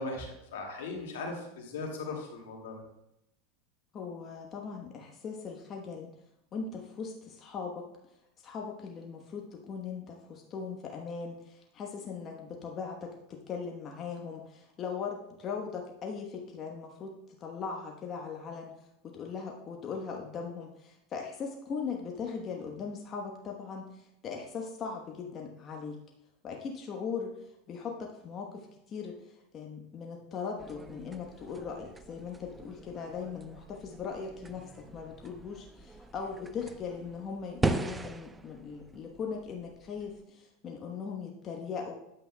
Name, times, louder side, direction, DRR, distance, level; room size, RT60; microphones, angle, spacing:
voice 1, 0.0-2.8, left 3 dB, 80° left, 0 dB, 2.0 m, -38 dB
voice 2, 3.9-6.1 6.5-7.9 8.4-17.1 17.4-18.8 19.0-26.0 26.4-27.4 27.7-41.9, left 5 dB, 35° left, 1 dB, 1.1 m, -39 dB
sound 1, 30.6-40.2, right 2 dB, 15° right, 0.5 m, -39 dB
9.8 x 7.8 x 2.2 m, 0.86 s
hypercardioid pair, 100°, 0 cm